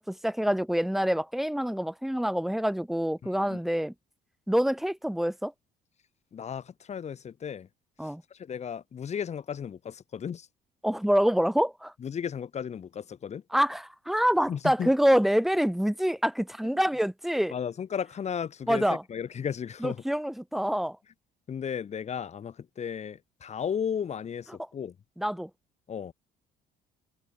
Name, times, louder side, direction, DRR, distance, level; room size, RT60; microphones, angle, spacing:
voice 1, 0.0-3.9 4.5-5.5 8.0-8.2 10.8-11.9 13.5-17.5 18.7-19.0 19.8-21.0 25.2-25.5, equal, ahead, 0.6 m, -26 dB
voice 2, 3.2-3.6 6.3-7.7 8.3-10.5 12.0-13.4 14.5-14.9 17.5-20.0 21.5-24.9 25.9-26.1, left 7 dB, 40° left, 2.9 m, -34 dB
cardioid pair, 110°, 17 cm